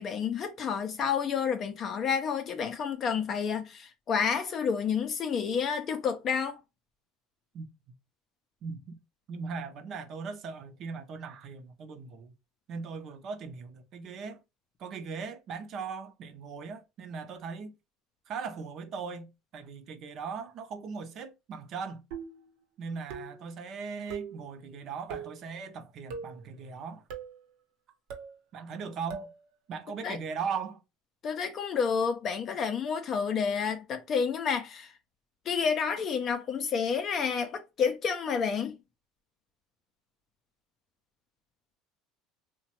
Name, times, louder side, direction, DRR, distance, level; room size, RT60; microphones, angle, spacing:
voice 1, 0.0-6.6 30.0-30.2 31.2-34.9 35.5-38.8, left 6 dB, 40° left, 0.4 m, -30 dB
voice 2, 8.6-9.0 9.3-12.3 12.7-14.4 14.8-17.8 18.3-22.0 22.8-27.0 28.5-29.3 29.7-30.8, right 5 dB, 50° right, 0.6 m, -39 dB
sound 1, 22.1-22.5 23.1-23.5 24.1-24.4 25.1-25.4 26.1-26.4 27.1-27.4 28.1-28.4 29.1-29.4, right 6 dB, 75° right, 0.8 m, -40 dB
2.9 x 2.1 x 2.8 m
supercardioid pair, 120°, 0 cm